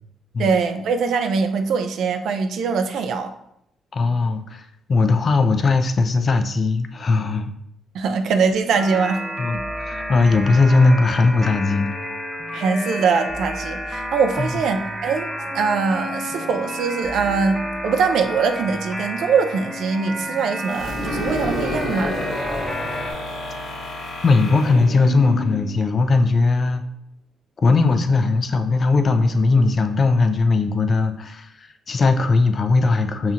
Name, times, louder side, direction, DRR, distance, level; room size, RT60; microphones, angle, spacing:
voice 1, 0.4-3.3 7.9-9.2 9.5-9.6 12.5-15.3 15.5-22.2, right 5 dB, 75° right, 7 dB, 0.4 m, -22 dB
voice 2, 3.9-7.5 9.4-11.9 14.4-14.5 24.2-26.8 27.6-33.3, left 3 dB, 45° left, 7 dB, 0.4 m, -19 dB
sound 1, 8.7-23.1, equal, 10° right, 0.9 m, -30 dB
sound 2, 20.7-26.4, left 2 dB, 75° left, 1.2 m, -29 dB
5.5 x 2.8 x 2.4 m, 0.75 s
cardioid pair, 90°, 0 cm